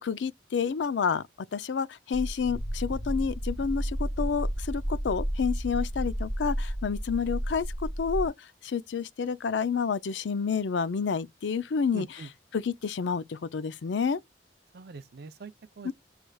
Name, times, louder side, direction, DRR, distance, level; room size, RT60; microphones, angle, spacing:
voice 1, 0.0-12.1 12.5-14.2 15.8-15.9, left 6 dB, 75° left, 0.5 m, -29 dB
sound 1, 2.1-8.3, equal, 15° left, 1.0 m, -32 dB
voice 2, 11.9-12.3 14.7-15.9, right 3 dB, 60° right, 0.6 m, -43 dB
6.1 x 3.3 x 2.3 m
head